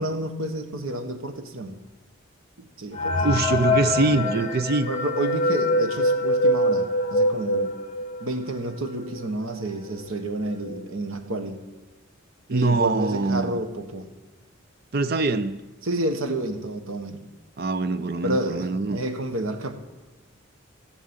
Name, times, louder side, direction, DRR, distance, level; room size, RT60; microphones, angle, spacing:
voice 1, 0.0-1.8 2.8-3.3 4.0-4.5 4.9-7.7 8.2-11.6 12.5-14.1 15.8-17.2 18.2-19.7, right 1 dB, 85° right, 1.4 m, -30 dB
sound 1, 2.9-8.4 8.8-8.9 9.1-9.3 10.0-10.1 10.5-10.8, left 1 dB, 35° left, 1.8 m, -24 dB
voice 2, 3.2-4.9 12.5-13.6 14.9-15.6 17.6-19.0, right 3 dB, 50° right, 0.6 m, -23 dB
15.0 x 7.4 x 8.9 m
head